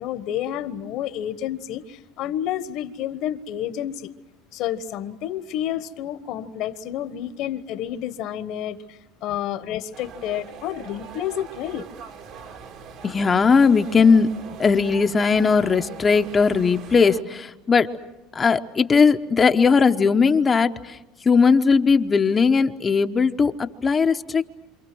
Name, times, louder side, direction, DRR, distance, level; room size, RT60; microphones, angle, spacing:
voice 1, 0.0-4.1 4.5-11.8, left 11 dB, 60° left, 12 dB, 1.3 m, -30 dB
sound 1, 9.9-17.2, right 7 dB, 60° right, 2.6 m, -41 dB
voice 2, 13.0-14.3 14.6-17.9 18.3-24.5, left 5 dB, 25° left, 7 dB, 0.9 m, -18 dB
28.0 x 26.5 x 6.2 m, 0.99 s
supercardioid pair, 125°, 0 cm